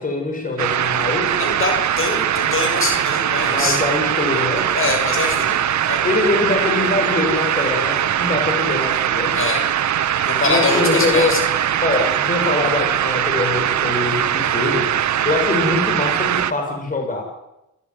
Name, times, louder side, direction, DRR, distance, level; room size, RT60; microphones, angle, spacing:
voice 1, 0.0-1.3 3.4-4.7 6.0-9.4 10.3-11.4 11.8-14.9 15.2-17.2, left 3 dB, 30° left, 2 dB, 6.6 m, -23 dB
sound 1, 0.6-16.5, right 10 dB, 70° right, 1.6 m, -21 dB
voice 2, 1.4-3.8 4.7-5.6 5.9-6.0 9.3-9.6 10.2-11.4, left 3 dB, 45° left, 5 dB, 6.9 m, -23 dB
28.0 x 16.0 x 9.8 m, 0.91 s
cardioid pair, 115°, 30 cm